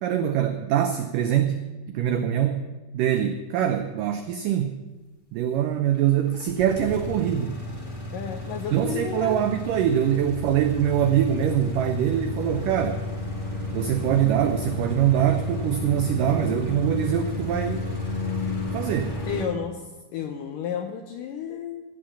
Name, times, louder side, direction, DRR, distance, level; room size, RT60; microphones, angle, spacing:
voice 1, 0.0-1.6 1.9-2.6 2.9-4.8 5.3-7.6 8.7-13.0 13.7-17.9 18.7-19.2, right 10 dB, 90° right, 7 dB, 1.8 m, -23 dB
sound 1, 5.9-19.4, left 2 dB, 30° left, 0.9 m, -32 dB
voice 2, 8.1-9.4 19.3-19.8 20.1-21.8, left 8 dB, 80° left, 5 dB, 2.0 m, -32 dB
16.5 x 7.8 x 7.1 m, 1.2 s
omnidirectional pair, 4.8 m